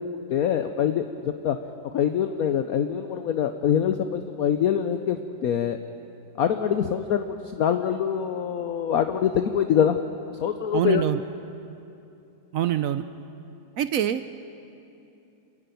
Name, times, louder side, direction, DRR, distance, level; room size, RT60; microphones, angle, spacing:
voice 1, 0.3-1.6 1.9-5.2 5.4-5.8 6.4-7.2 7.5-10.0 10.4-11.0, left 9 dB, 60° left, 8 dB, 1.0 m, -24 dB
voice 2, 10.7-11.2 12.5-13.0 13.8-14.2, right 11 dB, 75° right, 12 dB, 0.7 m, -24 dB
27.5 x 11.0 x 9.2 m, 2.8 s
omnidirectional pair, 2.1 m